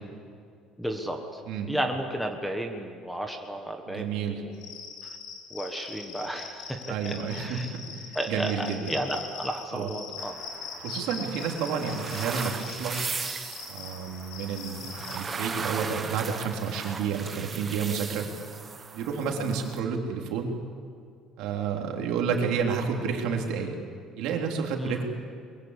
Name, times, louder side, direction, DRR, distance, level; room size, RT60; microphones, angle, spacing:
voice 1, 0.8-1.4 1.7-4.5 5.0-5.1 5.5-7.7 8.1-10.4 19.3-19.5 24.8-25.0, right 1 dB, ahead, 4 dB, 1.4 m, -33 dB
voice 2, 3.9-4.4 6.9-8.9 9.7-9.9 10.8-13.0 13.7-18.3 18.9-20.6 21.4-23.7 24.2-25.0, right 6 dB, 65° right, 2 dB, 3.4 m, -30 dB
Cricket, 4.5-15.2, left 5 dB, 75° left, 4.7 m, -41 dB
sound 1, 10.2-19.8, right 5 dB, 20° right, 1.2 m, -38 dB
23.0 x 22.5 x 8.3 m, 2.3 s
cardioid pair, 175°, 0 cm